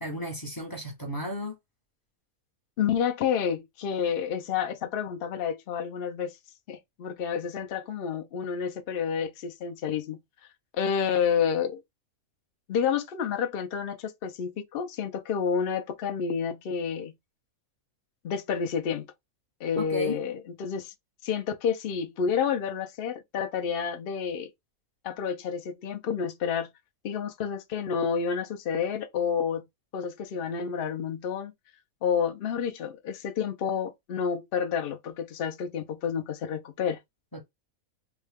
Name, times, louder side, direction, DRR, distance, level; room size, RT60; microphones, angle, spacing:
voice 1, 0.0-1.5 19.8-20.2 37.3-37.4, left 1 dB, 20° left, 0.8 m, -33 dB
voice 2, 2.8-6.4 6.7-10.2 10.7-11.8 12.7-17.1 18.2-19.1 19.6-20.9 21.2-24.5 25.0-26.7 27.0-29.6 29.9-31.5 32.0-37.0, left 7 dB, 60° left, 0.6 m, -29 dB
3.6 x 2.2 x 3.4 m
omnidirectional pair, 1.5 m